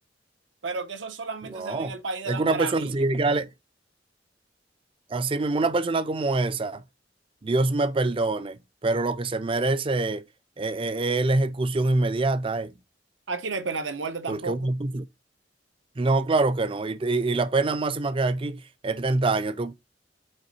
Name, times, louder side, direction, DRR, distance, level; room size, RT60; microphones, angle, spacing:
voice 1, 0.6-3.0 13.3-14.7, right 4 dB, 90° right, 1.1 m, -32 dB
voice 2, 1.5-1.9 2.3-3.5 5.1-6.8 7.4-10.2 10.6-12.7 14.3-15.1 16.0-19.7, right 2 dB, 30° right, 0.4 m, -25 dB
8.0 x 3.9 x 4.2 m
head